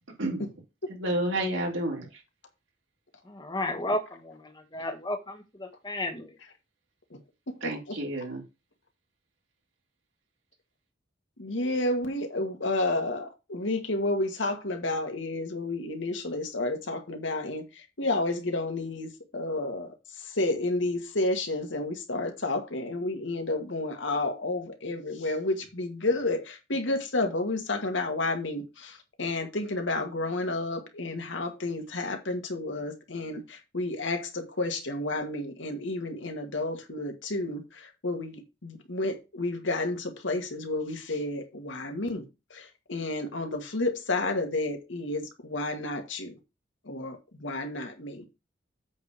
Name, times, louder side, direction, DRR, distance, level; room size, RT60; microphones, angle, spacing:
voice 1, 1.0-2.2 7.6-8.4, right 1 dB, 85° right, 3.5 m, -30 dB
voice 2, 3.3-6.3, left 1 dB, 20° left, 1.4 m, -33 dB
voice 3, 7.6-8.0 11.4-42.2 42.5-46.4 46.8-48.3, left 2 dB, 75° left, 1.6 m, -31 dB
8.2 x 3.4 x 6.6 m
head